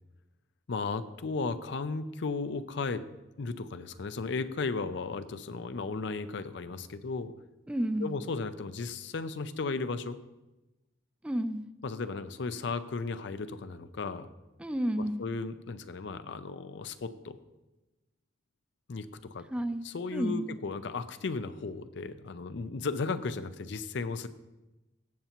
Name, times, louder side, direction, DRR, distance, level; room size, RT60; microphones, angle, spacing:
voice 1, 0.7-3.0 3.4-7.3 8.0-10.2 11.8-14.3 15.2-17.4 18.9-19.1 19.3-19.4 19.8-24.3, left 4 dB, 65° left, 12 dB, 0.5 m, -35 dB
voice 2, 7.7-8.2 11.2-11.7 14.6-15.3 19.5-19.8 20.1-20.6, right 1 dB, 5° right, 10 dB, 0.3 m, -31 dB
16.0 x 6.7 x 2.9 m, 1.0 s
head